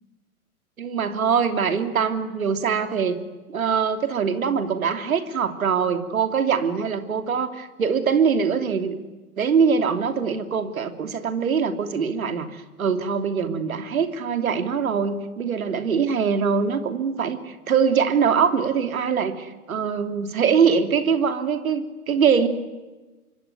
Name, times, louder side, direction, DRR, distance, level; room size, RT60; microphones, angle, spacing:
voice 1, 0.8-3.2 3.5-9.0 9.4-22.5, right 6 dB, 65° right, 8 dB, 3.1 m, -23 dB
26.5 x 24.0 x 9.5 m, 1.2 s
figure-of-eight pair, 115°, 44 cm